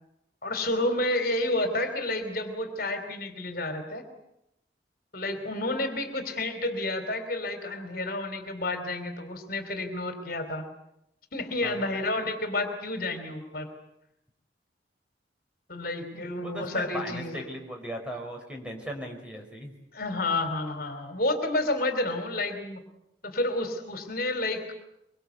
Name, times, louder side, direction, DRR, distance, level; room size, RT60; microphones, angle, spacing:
voice 1, 0.4-4.0 5.1-10.6 11.3-13.7 15.7-17.5 19.9-22.8 23.2-24.7, left 2 dB, 50° left, 8 dB, 3.2 m, -30 dB
voice 2, 16.1-19.7, equal, 5° right, 1 dB, 5.3 m, -38 dB
24.5 x 24.0 x 8.2 m, 0.81 s
head